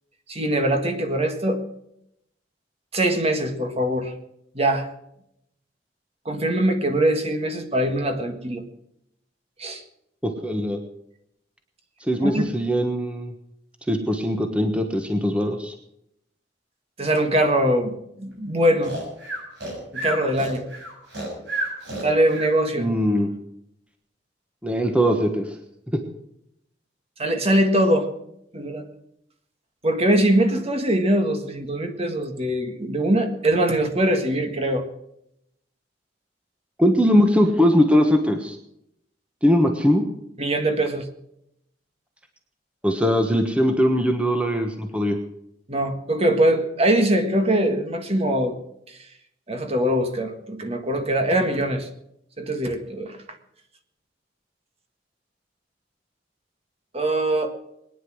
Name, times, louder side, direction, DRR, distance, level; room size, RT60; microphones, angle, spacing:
voice 1, 0.3-1.6 2.9-4.1 4.5-4.9 6.3-8.6 9.6-9.8 12.2-12.5 17.0-18.9 19.9-20.7 22.0-22.9 27.2-28.1 28.5-28.9 29.8-34.9 40.4-41.1 45.7-48.6 49.5-51.9 52.4-53.2 56.9-57.5, right 1 dB, 35° right, 6 dB, 1.7 m, -22 dB
voice 2, 10.2-10.8 12.1-13.3 13.9-15.7 22.8-23.3 24.6-25.6 36.8-38.6 39.4-40.0 42.8-45.2, equal, 5° right, 4 dB, 1.3 m, -20 dB
Breathing, 18.8-22.5, right 1 dB, 70° right, 7.1 m, -31 dB
21.5 x 10.0 x 6.3 m, 0.78 s
head